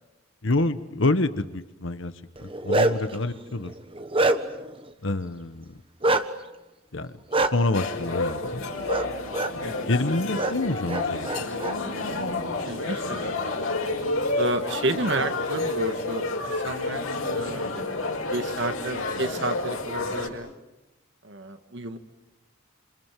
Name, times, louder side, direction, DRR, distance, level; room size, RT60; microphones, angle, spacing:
voice 1, 0.4-2.1 2.4-3.7 5.0-5.8 6.9-7.1 7.5-8.6 9.5-11.4, left 2 dB, 65° left, 11 dB, 1.2 m, -27 dB
Bark, 2.4-3.1 3.7-4.7 6.0-6.2 7.3-7.5 8.9-9.1 9.3-9.5 10.3-10.5 10.9-11.7, right 2 dB, 25° right, 1.3 m, -24 dB
sound 1, 7.7-20.3, left 2 dB, 85° left, 5.6 m, -30 dB
voice 2, 12.6-13.3 14.3-17.9 18.3-20.5 21.2-22.0, right 2 dB, 60° right, 7 dB, 1.9 m, -31 dB
28.5 x 27.5 x 7.6 m, 0.99 s
head